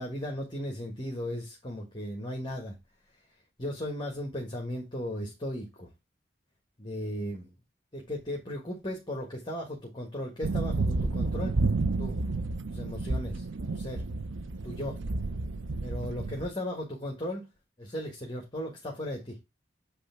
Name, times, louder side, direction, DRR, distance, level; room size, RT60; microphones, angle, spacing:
voice 1, 0.0-2.7 3.6-5.9 6.8-7.5 7.9-11.5 12.0-12.2 12.7-14.0 14.6-15.0 15.8-17.4 17.8-19.4, left 1 dB, 25° left, 1.6 m, -36 dB
sound 1, 10.4-16.5, right 3 dB, 80° right, 0.7 m, -31 dB
8.4 x 3.3 x 5.7 m
head